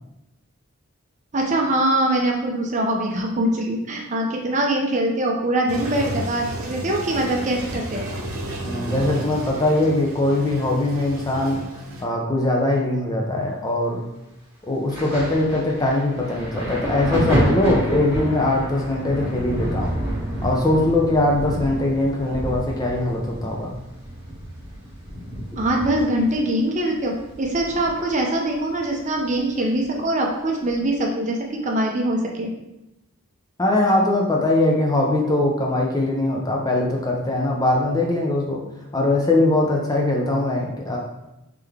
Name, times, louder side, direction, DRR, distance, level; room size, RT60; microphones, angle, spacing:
voice 1, 1.3-8.1 25.6-32.5, right 1 dB, 35° right, 1 dB, 0.5 m, -23 dB
Toilet flush, 5.7-12.0, right 1 dB, 70° right, 0.7 m, -32 dB
voice 2, 8.6-11.6 12.0-14.0 14.7-20.0 20.4-23.7 33.6-38.6 38.9-41.0, left 2 dB, 15° left, -1 dB, 0.5 m, -21 dB
Thunder, 14.9-28.2 28.5-29.9 30.7-30.9, right 1 dB, 10° right, 1.5 m, -29 dB
3.6 x 3.3 x 3.4 m, 0.93 s
head